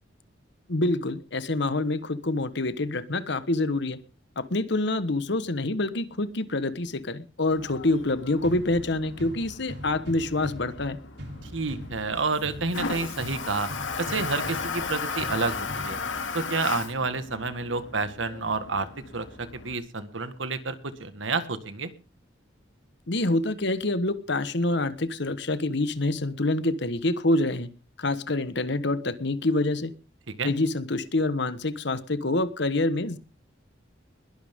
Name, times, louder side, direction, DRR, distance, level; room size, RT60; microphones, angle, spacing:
voice 1, 0.7-4.0 4.4-11.0 23.1-27.7 28.0-29.9 30.4-33.2, left 2 dB, 65° left, 13 dB, 1.3 m, -26 dB
Toilet flush, 7.5-19.7, left 4 dB, 85° left, 2.3 m, -36 dB
sound 1, 8.4-16.4, equal, 65° right, 3.6 m, -41 dB
voice 2, 11.4-13.7 14.0-16.0 16.3-18.9 19.1-21.9 30.4-30.5, right 4 dB, 80° right, 12 dB, 1.6 m, -29 dB
21.5 x 11.5 x 3.7 m, 0.34 s
head